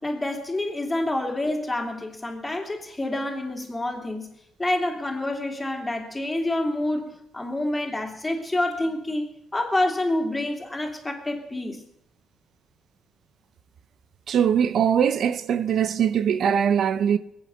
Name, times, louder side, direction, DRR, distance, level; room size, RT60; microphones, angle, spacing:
voice 1, 0.0-4.3 4.6-9.3 9.5-11.8, left 1 dB, 15° left, 3.1 m, -27 dB
voice 2, 14.3-17.2, right 8 dB, 60° right, 0.7 m, -21 dB
21.5 x 8.8 x 6.4 m
cardioid pair, 90°, 0 cm